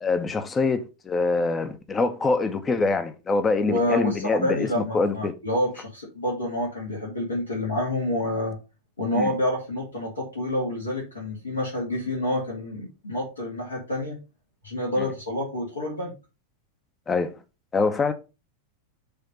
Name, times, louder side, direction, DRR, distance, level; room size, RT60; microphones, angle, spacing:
voice 1, 0.0-5.3 9.1-9.3 17.1-17.4 17.7-18.1, left 3 dB, 20° left, 0.9 m, -24 dB
voice 2, 3.7-8.6 9.0-14.2 14.6-16.1, left 1 dB, 75° left, 2.5 m, -28 dB
6.9 x 3.4 x 5.5 m
figure-of-eight pair, 90°, 0 cm